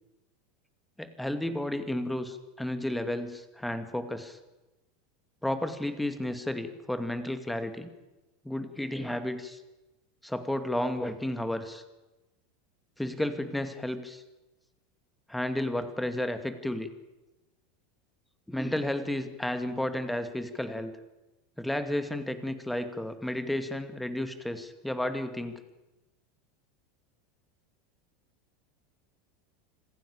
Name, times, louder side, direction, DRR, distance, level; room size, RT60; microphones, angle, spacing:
voice 1, 1.0-4.4 5.4-7.9 8.4-9.6 10.2-11.8 13.0-14.2 15.3-16.9 18.5-20.9 21.6-25.6, left 1 dB, 5° left, 9 dB, 2.4 m, -32 dB
26.5 x 15.5 x 8.6 m, 1.0 s
figure-of-eight pair, 80°, 0 cm